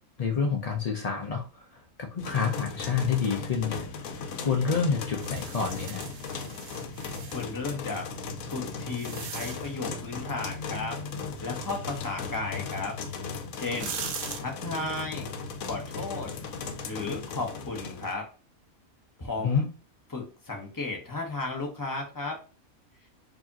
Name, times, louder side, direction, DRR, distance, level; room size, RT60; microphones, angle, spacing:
voice 1, 0.2-3.9 4.4-6.1 19.4-19.6, left 5 dB, 60° left, 2 dB, 0.4 m, -28 dB
sound 1, 2.2-18.1, left 4 dB, 80° left, 1.1 m, -37 dB
sound 2, 5.2-7.5 8.3-9.9 12.9-13.0 13.5-14.4, right 7 dB, 75° right, 0.9 m, -40 dB
voice 2, 7.3-8.1 8.5-11.0 11.4-13.0 13.5-14.0 14.4-15.3 15.6-16.4 16.8-18.3 19.2-19.6 20.1-22.4, left 3 dB, 20° left, 0 dB, 0.7 m, -34 dB
4.8 x 2.8 x 2.7 m, 0.35 s
omnidirectional pair, 1.4 m